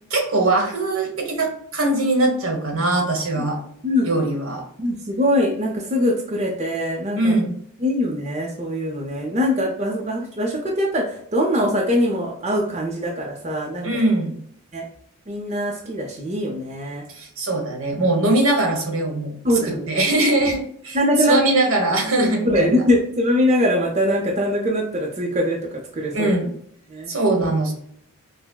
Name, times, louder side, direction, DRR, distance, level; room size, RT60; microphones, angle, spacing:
voice 1, 0.1-3.6 4.0-4.6 7.1-7.5 13.8-14.3 17.1-19.4 19.7-22.8 26.1-26.5 27.1-27.7, right 2 dB, 75° right, 1 dB, 1.1 m, -21 dB
voice 2, 4.8-7.3 7.8-13.9 14.7-14.8 15.3-17.0 19.4-19.9 20.9-21.4 22.1-26.3 26.9-27.1, left 1 dB, 30° right, -1 dB, 0.5 m, -22 dB
5.6 x 2.0 x 2.2 m, 0.68 s
head